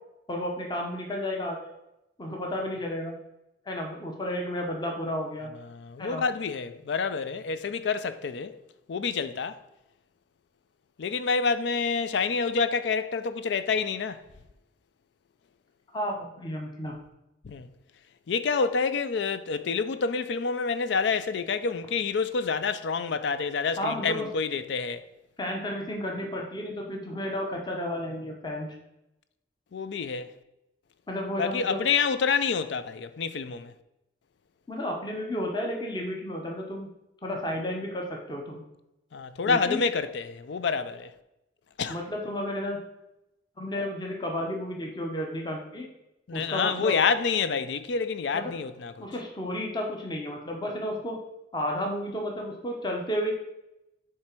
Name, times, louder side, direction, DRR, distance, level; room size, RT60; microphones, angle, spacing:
voice 1, 0.3-1.7 2.2-3.2 3.7-5.5 6.0-6.2 15.9-17.0 23.8-24.3 25.4-28.7 31.1-31.8 34.7-36.9 37.2-38.6 39.5-39.8 41.9-42.8 43.6-45.9 46.3-47.0 48.3-48.5 49.0-51.2 51.5-53.3, left 1 dB, 25° left, 0.8 m, -32 dB
voice 2, 5.7-8.6 8.9-9.6 11.0-14.2 17.4-17.7 18.3-25.0 29.7-30.3 31.4-33.7 39.1-41.1 41.8-42.0 46.3-49.1, left 5 dB, 75° left, 0.4 m, -28 dB
7.5 x 3.3 x 4.4 m
head